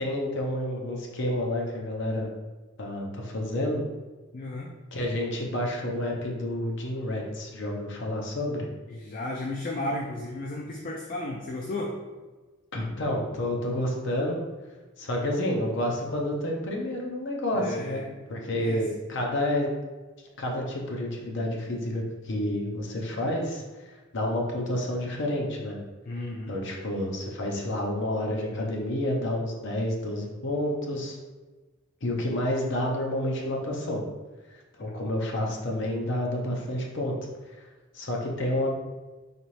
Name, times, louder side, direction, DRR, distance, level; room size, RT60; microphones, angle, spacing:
voice 1, 0.0-2.3 2.8-3.8 4.9-8.7 12.7-14.4 15.0-19.7 20.4-23.6 24.1-25.8 26.5-31.2 32.0-34.0 34.8-37.2 37.6-37.7 37.9-38.7, left 1 dB, 60° left, 0 dB, 0.7 m, -29 dB
voice 2, 4.3-4.7 8.9-12.0 17.5-18.1 18.5-18.8 26.1-26.6 34.8-34.9, left 1 dB, 40° left, 0 dB, 0.4 m, -34 dB
4.2 x 3.0 x 3.1 m, 1.2 s
head